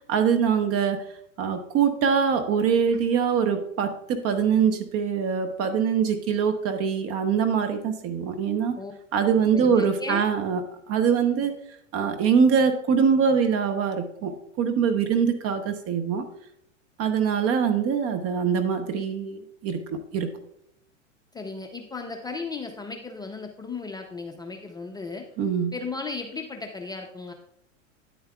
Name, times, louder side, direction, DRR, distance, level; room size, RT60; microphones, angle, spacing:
voice 1, 0.1-1.0 1.4-8.8 9.1-11.6 11.9-16.3 17.0-20.3 25.4-25.7, right 6 dB, 40° right, 8 dB, 0.9 m, -23 dB
voice 2, 9.2-10.2 21.3-25.2 25.7-27.3, left 4 dB, 10° left, 3 dB, 0.6 m, -35 dB
9.5 x 8.9 x 2.3 m, 0.75 s
hypercardioid pair, 110°, 38 cm